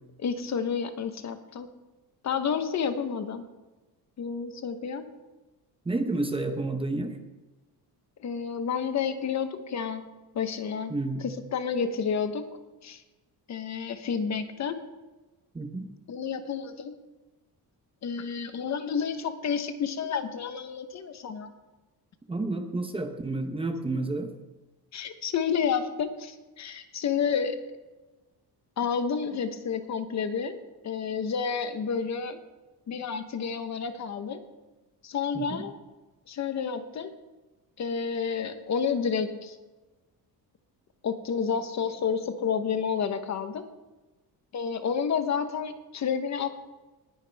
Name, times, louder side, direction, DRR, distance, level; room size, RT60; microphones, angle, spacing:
voice 1, 0.2-1.7 2.2-3.4 4.2-5.1 8.2-10.0 10.3-10.9 11.2-12.5 12.8-13.0 13.5-14.8 16.1-16.9 18.0-21.5 24.9-27.6 28.8-30.6 30.8-32.4 32.9-34.4 35.0-35.7 36.3-37.1 37.8-39.6 41.0-43.6 44.5-46.5, left 6 dB, 45° left, 9 dB, 1.0 m, -30 dB
voice 2, 5.9-7.2 10.9-11.3 15.5-15.9 22.3-24.3 35.3-35.6, right 2 dB, 15° right, 6 dB, 0.8 m, -30 dB
19.5 x 10.5 x 3.4 m, 1.1 s
cardioid pair, 180°, 39 cm